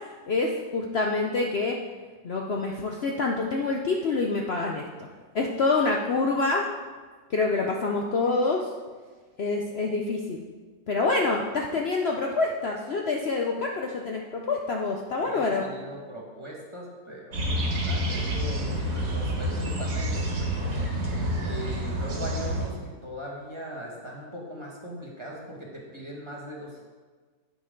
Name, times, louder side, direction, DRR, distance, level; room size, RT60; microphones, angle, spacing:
voice 1, 0.3-1.8 2.2-5.1 5.3-6.7 7.3-8.7 9.4-10.4 10.9-15.6, left 3 dB, 70° left, 1 dB, 0.5 m, -26 dB
voice 2, 15.2-20.8 21.4-26.8, right 1 dB, 15° right, -3 dB, 1.7 m, -40 dB
sound 1, 17.3-22.7, equal, 55° right, 2.3 m, -28 dB
9.6 x 9.0 x 3.9 m, 1.4 s
omnidirectional pair, 2.0 m